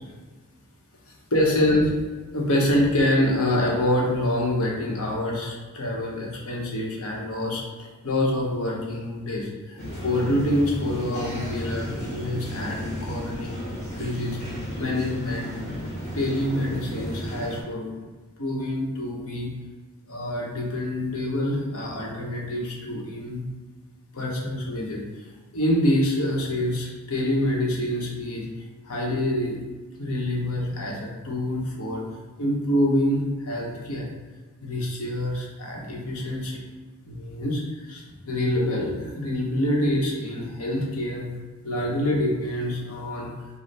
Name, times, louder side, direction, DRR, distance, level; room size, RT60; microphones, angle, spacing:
voice 1, 1.3-1.9 2.3-13.5 13.9-14.4 14.8-15.5 16.1-18.0 18.4-19.5 20.1-23.4 24.1-28.5 28.8-29.6 30.0-32.0 32.4-34.1 34.6-36.6 37.0-41.3 41.6-43.3, left 1 dB, 90° left, -2 dB, 1.1 m, -26 dB
sound 1, 9.8-17.6, equal, 35° left, 1.3 m, -33 dB
5.2 x 2.3 x 4.1 m, 1.4 s
head